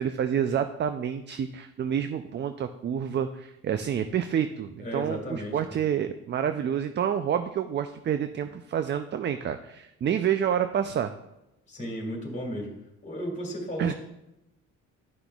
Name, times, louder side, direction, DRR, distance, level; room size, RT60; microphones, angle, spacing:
voice 1, 0.0-11.1 13.8-13.9, right 8 dB, 40° right, 9 dB, 0.4 m, -28 dB
voice 2, 4.8-5.8 11.7-12.7 13.0-13.9, equal, 25° left, 0 dB, 2.2 m, -34 dB
11.5 x 5.9 x 2.3 m, 0.91 s
cardioid pair, 90°, 30 cm